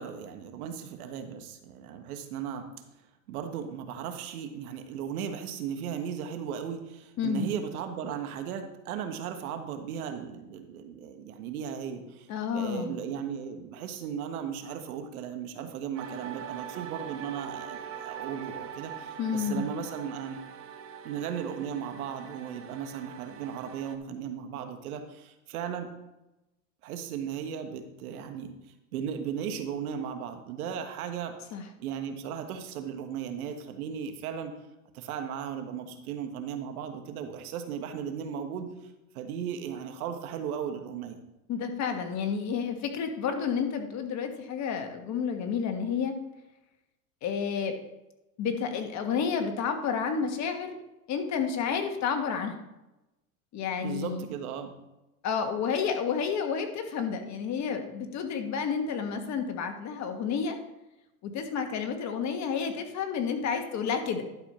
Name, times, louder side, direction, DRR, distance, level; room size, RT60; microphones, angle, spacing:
voice 1, 0.0-2.7 3.3-12.3 12.5-20.4 21.0-25.9 26.8-28.6 28.9-31.4 31.8-34.5 34.9-38.7 39.1-41.2 53.8-54.7, right 8 dB, 75° right, 6 dB, 1.4 m, -36 dB
voice 2, 7.2-7.5 12.3-13.0 19.2-19.7 31.5-31.6 41.5-46.1 47.2-47.7 48.4-50.8 51.1-52.6 53.5-54.3 55.2-60.6 61.2-64.2, left 6 dB, 40° left, 6 dB, 1.4 m, -30 dB
sound 1, 16.0-24.0, right 8 dB, 30° right, 1.0 m, -42 dB
11.5 x 4.5 x 5.6 m, 0.96 s
supercardioid pair, 115°, 44 cm